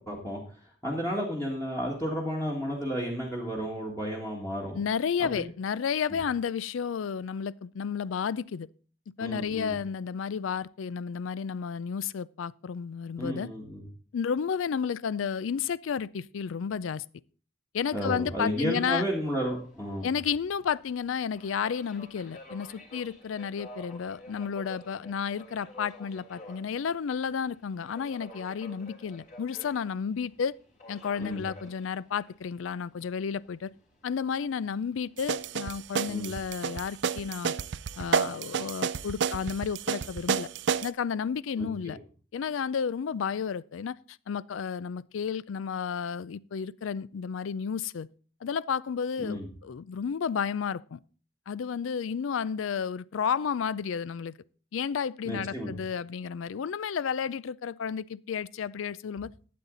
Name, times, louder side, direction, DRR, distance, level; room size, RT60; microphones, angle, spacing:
voice 1, 0.1-0.4 0.8-4.8 9.2-9.7 13.2-13.9 17.9-20.1 31.2-31.4 36.1-36.3 41.6-42.0 49.2-49.5 55.3-55.7, equal, 15° left, 1.9 m, -32 dB
voice 2, 4.7-8.7 9.2-13.5 14.1-17.1 17.7-19.0 20.0-30.6 30.9-33.7 34.0-37.5 38.0-40.5 40.8-42.0 42.3-48.1 48.4-51.0 51.5-54.4 54.7-59.3, left 7 dB, 85° left, 0.4 m, -32 dB
Subway metro underground, 18.3-36.7, left 1 dB, 40° left, 3.5 m, -51 dB
sound 1, 35.2-40.9, right 6 dB, 60° right, 0.4 m, -30 dB
12.0 x 8.6 x 3.9 m
head